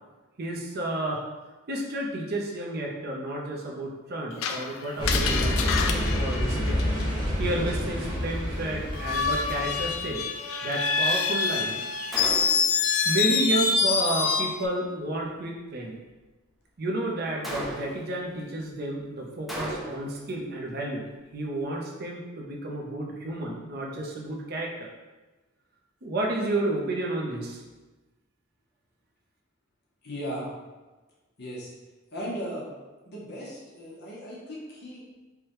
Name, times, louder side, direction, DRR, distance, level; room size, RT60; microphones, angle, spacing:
voice 1, 0.4-1.2 1.7-6.8 7.4-10.2 10.6-11.8 13.0-16.0 16.8-24.9 26.0-27.6, right 1 dB, 50° right, -1 dB, 0.6 m, -31 dB
Screech, 4.4-7.3 8.9-14.7, left 5 dB, 85° left, 0.3 m, -26 dB
sound 1, 5.0-10.1, equal, 25° left, 0.8 m, -28 dB
Gunshot gunfire, 12.1-12.8 17.4-18.1 19.5-20.2, equal, ahead, 0.4 m, -34 dB
voice 2, 30.0-30.5 31.4-31.7 32.1-32.7 33.1-35.0, equal, 55° left, -5 dB, 0.8 m, -36 dB
4.7 x 2.2 x 3.0 m, 1.2 s
head